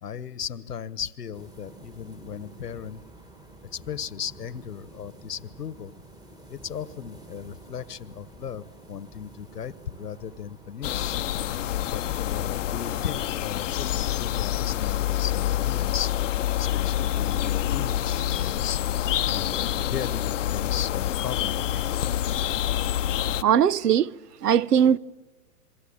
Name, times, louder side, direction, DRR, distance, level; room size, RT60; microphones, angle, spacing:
voice 1, 0.0-3.0 3.7-5.9 6.5-11.2 11.9-16.2 16.6-18.8 19.3-21.9, left 8 dB, 90° left, 1.4 m, -36 dB
sound 1, 1.3-20.0, right 2 dB, 10° right, 1.6 m, -49 dB
sound 2, 10.8-23.4, left 12 dB, 55° left, 0.8 m, -27 dB
voice 2, 23.4-24.1 24.4-25.0, right 9 dB, 85° right, 0.8 m, -19 dB
27.5 x 23.5 x 8.8 m
hypercardioid pair, 145°, 46 cm